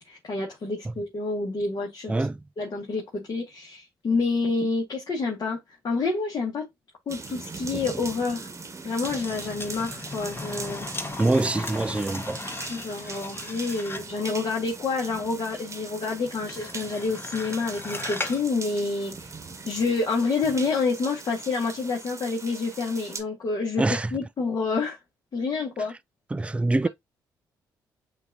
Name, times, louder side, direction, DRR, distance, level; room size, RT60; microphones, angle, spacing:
voice 1, 0.0-2.1 2.6-5.6 5.8-6.7 7.1-8.5 8.8-10.8 12.7-19.3 19.7-23.9 24.1-25.0 25.3-25.9, left 4 dB, 50° left, 1.6 m, -28 dB
sound 1, 7.1-23.2, right 4 dB, 30° right, 1.1 m, -40 dB
sound 2, 9.0-14.2 16.5-18.5 18.8-18.9, left 2 dB, 25° left, 1.0 m, -37 dB
voice 2, 11.2-12.4 23.8-24.1 26.3-26.9, right 2 dB, 15° right, 0.3 m, -24 dB
8.0 x 2.7 x 2.4 m
supercardioid pair, 55°, 9 cm